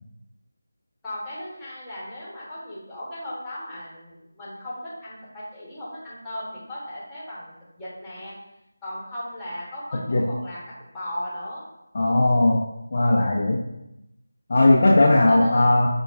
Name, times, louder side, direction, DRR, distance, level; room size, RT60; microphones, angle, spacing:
voice 1, 1.0-8.3 8.8-10.6 10.9-11.6 14.9-15.7, left 1 dB, 5° left, -9 dB, 1.0 m, -36 dB
voice 2, 11.9-12.6 12.9-13.6 14.5-15.9, left 2 dB, 40° left, -3 dB, 0.4 m, -18 dB
5.6 x 2.2 x 2.3 m, 0.87 s
figure-of-eight pair, 160°, 0 cm